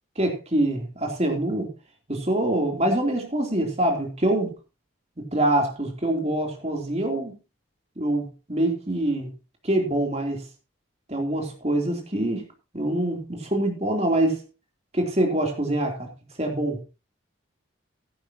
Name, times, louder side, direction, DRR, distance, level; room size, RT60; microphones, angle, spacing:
voice 1, 0.1-1.7 2.1-4.5 5.2-7.3 8.0-9.3 9.6-10.4 11.1-12.4 12.7-14.4 14.9-16.1 16.4-16.8, right 1 dB, 30° right, 2 dB, 3.3 m, -25 dB
15.0 x 11.5 x 2.9 m, 0.29 s
head